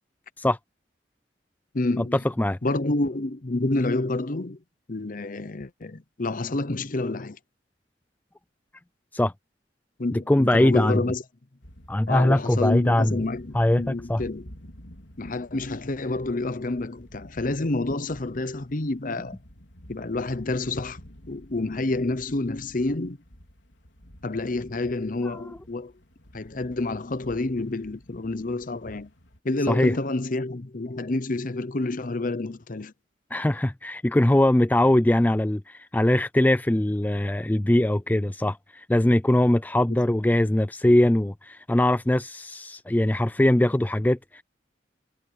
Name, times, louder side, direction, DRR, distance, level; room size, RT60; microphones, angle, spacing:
voice 1, 1.7-2.2 2.6-4.6 4.9-7.4 10.0-11.2 12.1-14.5 15.2-19.4 19.9-21.0 21.3-23.2 24.2-25.9 26.3-29.1 29.4-32.9 39.9-40.0, left 2 dB, 50° left, 0.8 m, -28 dB
voice 2, 10.1-11.0 11.9-13.2 13.5-14.2 25.2-25.4 29.7-29.9 33.3-44.4, left 1 dB, 10° left, 0.4 m, -21 dB
sound 1, 11.6-29.4, equal, 85° left, 4.0 m, -50 dB
head